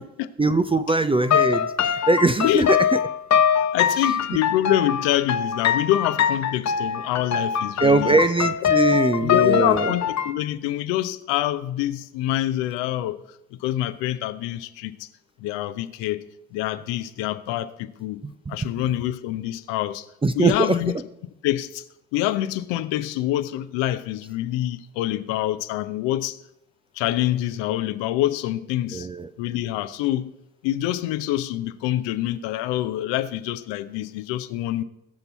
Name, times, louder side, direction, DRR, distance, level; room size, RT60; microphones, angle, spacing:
voice 1, 0.4-3.0 7.8-9.9 18.2-18.7 20.2-20.8 28.9-29.3, right 3 dB, 10° right, 0.5 m, -21 dB
sound 1, 1.2-10.3, left 8 dB, 35° left, 0.8 m, -23 dB
voice 2, 3.7-8.2 9.2-13.2 13.6-15.1 15.4-16.2 16.5-18.2 18.5-20.1 20.3-20.9 21.4-21.8 22.1-26.4 27.0-29.1 29.4-30.3 30.6-34.8, left 14 dB, 65° left, 0.8 m, -26 dB
20.0 x 6.9 x 4.1 m
hypercardioid pair, 50°, 47 cm